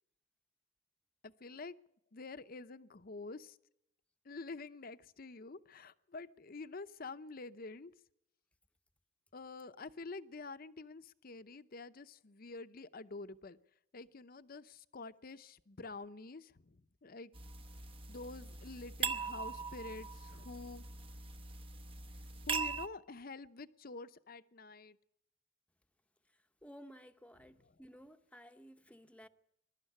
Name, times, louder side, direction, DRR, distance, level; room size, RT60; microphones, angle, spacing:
voice 1, 1.2-1.8 2.1-3.6 4.2-7.9 9.3-13.6 13.9-17.3 18.1-21.0 22.4-25.0 27.6-27.7, left 3 dB, 50° left, 0.8 m, -48 dB
sound 1, 17.3-22.9, right 5 dB, 30° right, 0.9 m, -41 dB
voice 2, 26.6-29.3, equal, 5° left, 0.9 m, -55 dB
22.0 x 12.5 x 9.9 m
head